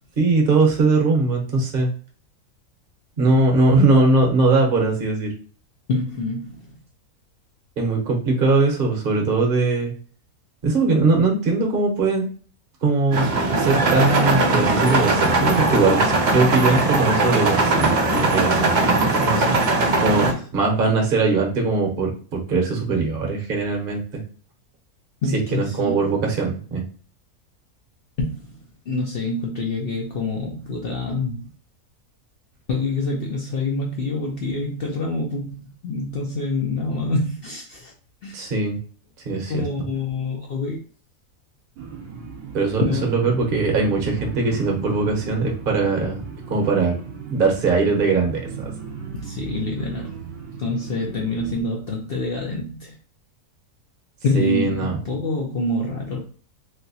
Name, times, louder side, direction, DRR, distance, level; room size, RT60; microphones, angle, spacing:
voice 1, 0.2-1.9 3.2-5.3 7.8-9.9 10.6-12.2 12.8-13.3 13.6-24.0 25.5-26.8 38.3-38.8 39.2-39.6 42.5-46.2 46.5-46.9 47.3-48.7 54.3-55.0, right 3 dB, 40° right, 0 dB, 0.9 m, -20 dB
voice 2, 5.9-6.7 25.2-26.1 28.2-31.5 32.7-37.9 38.2-38.4 39.5-40.8 42.9-43.1 49.1-50.2 50.6-53.0 54.2-56.2, left 2 dB, 60° left, -1 dB, 0.6 m, -26 dB
sound 1, 13.1-20.3, right 2 dB, 80° right, 0.4 m, -20 dB
sound 2, 41.8-51.6, right 5 dB, 65° right, 1.1 m, -36 dB
3.3 x 2.9 x 2.7 m, 0.43 s
omnidirectional pair, 1.6 m